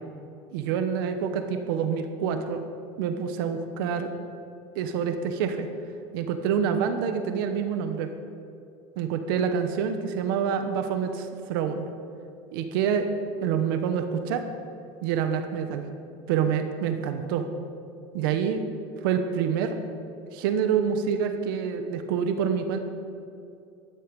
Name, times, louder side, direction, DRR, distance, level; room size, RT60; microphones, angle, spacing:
voice 1, 0.5-2.6 3.0-4.1 4.7-5.7 6.1-8.1 9.0-11.9 12.5-13.1 13.4-14.4 15.0-15.8 16.3-17.5 18.1-18.6 19.0-19.8 20.3-22.8, right 7 dB, 85° right, 8 dB, 1.1 m, -27 dB
13.0 x 11.5 x 5.3 m, 2.5 s
cardioid pair, 150°, 11 cm